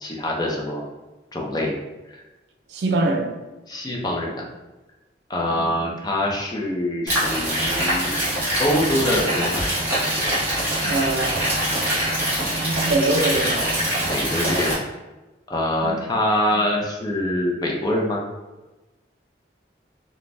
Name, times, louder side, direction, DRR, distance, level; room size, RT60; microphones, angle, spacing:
voice 1, 0.0-0.9 1.3-1.8 2.1-2.2 3.7-4.4 5.3-8.1 8.6-9.7 14.1-14.8 15.5-18.2, left 1 dB, 20° left, 0.4 m, -24 dB
voice 2, 2.7-3.4 5.5-5.7 10.8-11.5 12.5-13.7 15.8-16.0, right 2 dB, 70° right, 0.4 m, -24 dB
sound 1, 7.1-14.7, right 1 dB, 10° right, 0.9 m, -23 dB
3.3 x 2.1 x 2.5 m
head